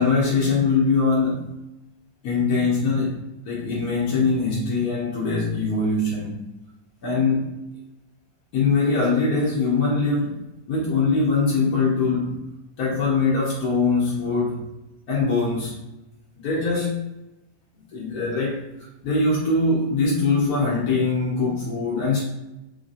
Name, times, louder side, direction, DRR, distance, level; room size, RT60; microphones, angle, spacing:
voice 1, 0.0-1.5 2.2-3.2 3.5-6.3 7.0-7.4 8.5-12.4 12.8-14.6 15.1-15.7 16.4-17.0 17.9-18.6 19.0-22.2, left 4 dB, 65° left, -6 dB, 1.1 m, -22 dB
3.2 x 2.6 x 2.5 m, 0.95 s
omnidirectional pair, 2.0 m